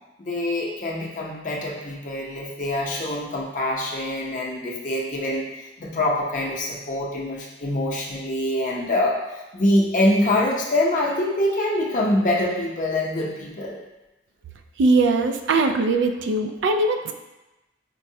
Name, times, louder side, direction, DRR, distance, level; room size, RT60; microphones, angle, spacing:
voice 1, 0.2-13.8, left 1 dB, 45° left, -3 dB, 0.6 m, -24 dB
voice 2, 14.8-17.1, right 3 dB, 85° right, 6 dB, 0.3 m, -20 dB
4.5 x 2.0 x 2.7 m, 1.0 s
head